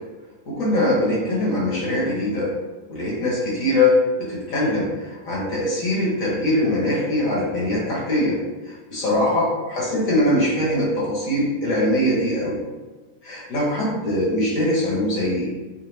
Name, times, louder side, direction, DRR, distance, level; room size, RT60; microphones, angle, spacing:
voice 1, 0.5-2.5 2.9-8.4 8.6-12.6 13.2-15.5, left 1 dB, 60° left, -6 dB, 1.6 m, -22 dB
5.0 x 2.1 x 3.2 m, 1.2 s
omnidirectional pair, 1.7 m